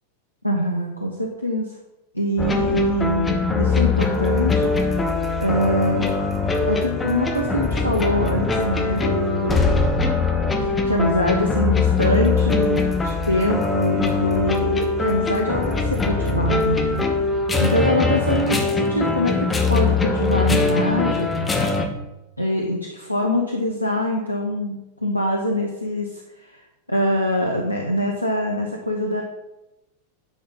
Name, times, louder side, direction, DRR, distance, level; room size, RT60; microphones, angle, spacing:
voice 1, 0.4-1.7 2.1-5.0 5.4-6.2 6.6-9.8 10.6-17.0 17.6-21.3 22.4-26.6 26.9-29.2, equal, 90° left, 1 dB, 0.9 m, -24 dB
sound 1, 2.4-21.9, left 4 dB, 15° left, 1.4 m, -22 dB
10.5 x 4.7 x 5.5 m, 0.98 s
figure-of-eight pair, 90°, 0 cm